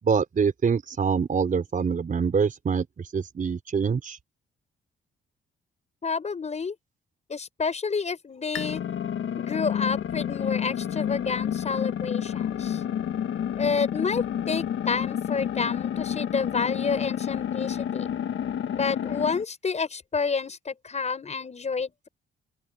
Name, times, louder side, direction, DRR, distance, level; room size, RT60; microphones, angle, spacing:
voice 1, 0.0-4.2, right 6 dB, 40° right, 5.2 m, -25 dB
voice 2, 6.0-6.7 7.3-8.8 9.4-12.8 13.6-18.1 18.7-22.1, left 5 dB, 35° left, 6.5 m, -29 dB
sound 1, 8.5-19.4, left 9 dB, 75° left, 1.5 m, -29 dB
open air
cardioid pair, 125°, 20 cm